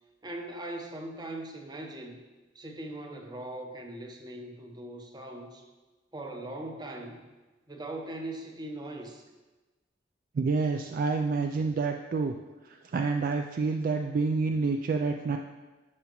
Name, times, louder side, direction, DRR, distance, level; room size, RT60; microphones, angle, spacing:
voice 1, 0.2-2.2 2.5-5.6 6.1-7.3 7.7-9.2, right 1 dB, 25° right, 3 dB, 0.8 m, -40 dB
voice 2, 10.3-12.4 12.6-15.4, right 4 dB, 50° right, 4 dB, 0.3 m, -28 dB
10.5 x 5.6 x 3.0 m, 1.2 s
head